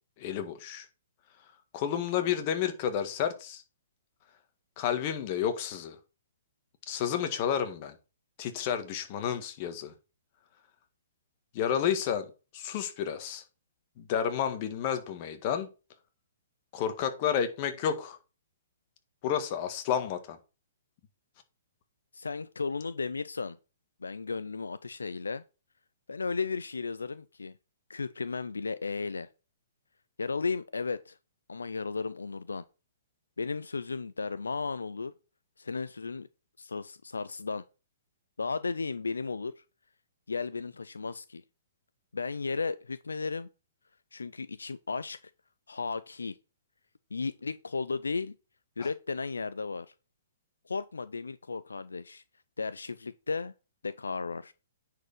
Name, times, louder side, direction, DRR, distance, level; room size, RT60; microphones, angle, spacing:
voice 1, 0.2-0.8 1.7-3.6 4.8-6.0 6.9-7.9 8.4-9.9 11.5-12.2 12.5-13.4 14.0-15.7 16.7-18.2 19.2-20.4 48.8-48.9, left 8 dB, 40° left, 1.6 m, -31 dB
voice 2, 22.1-23.6 24.0-25.4 26.1-27.5 27.9-29.3 30.2-31.2 31.5-32.6 33.4-35.1 35.6-36.3 36.6-37.6 38.4-39.6 40.3-41.4 42.1-43.5 44.1-45.2 45.7-46.4 47.1-48.3 48.8-49.9 50.7-52.2 52.6-53.5 53.8-54.5, left 4 dB, 85° left, 0.5 m, -34 dB
9.7 x 4.7 x 5.0 m
hypercardioid pair, 130°, 0 cm